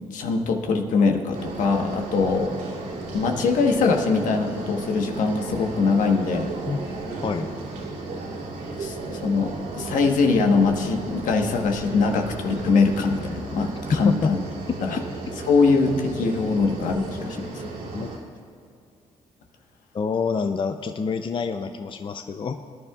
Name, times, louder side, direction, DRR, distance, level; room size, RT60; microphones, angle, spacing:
voice 1, 0.1-2.5 3.1-6.5 8.8-14.4 14.8-15.0 15.5-17.6, left 4 dB, 75° left, 3 dB, 1.3 m, -22 dB
sound 1, 1.3-18.2, right 3 dB, 75° right, 3.0 m, -34 dB
voice 2, 19.9-22.6, left 5 dB, 40° left, 8 dB, 0.5 m, -27 dB
19.5 x 10.5 x 2.4 m, 2.4 s
cardioid pair, 70°, 13 cm